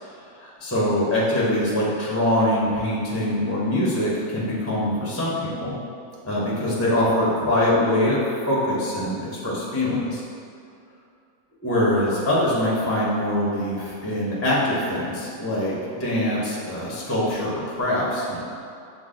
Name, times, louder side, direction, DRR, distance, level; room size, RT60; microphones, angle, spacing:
voice 1, 0.1-5.8 6.2-10.2 11.6-18.4, left 1 dB, 25° left, -6 dB, 0.3 m, -23 dB
6.0 x 2.1 x 3.7 m, 2.5 s
omnidirectional pair, 1.6 m